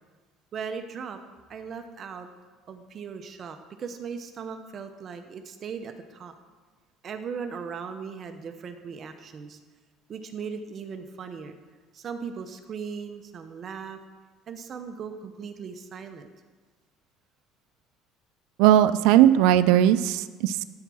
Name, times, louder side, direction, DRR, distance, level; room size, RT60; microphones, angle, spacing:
voice 1, 0.5-1.2 1.5-2.3 2.7-6.3 7.0-9.6 10.1-11.6 11.9-14.0 14.5-16.3, right 6 dB, 35° right, 7 dB, 0.7 m, -38 dB
voice 2, 18.6-20.7, right 11 dB, 80° right, 13 dB, 0.4 m, -18 dB
12.0 x 4.6 x 6.2 m, 1.4 s
cardioid pair, 140°, 0 cm